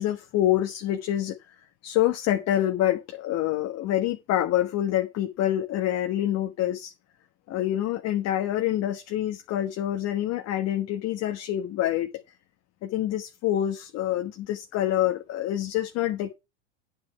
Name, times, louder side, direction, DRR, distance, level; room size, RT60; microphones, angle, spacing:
voice 1, 0.0-1.4 1.8-6.9 7.5-12.1 12.8-16.3, left 12 dB, 40° left, 1.3 m, -26 dB
9.7 x 7.9 x 4.6 m
hypercardioid pair, 110°, 38 cm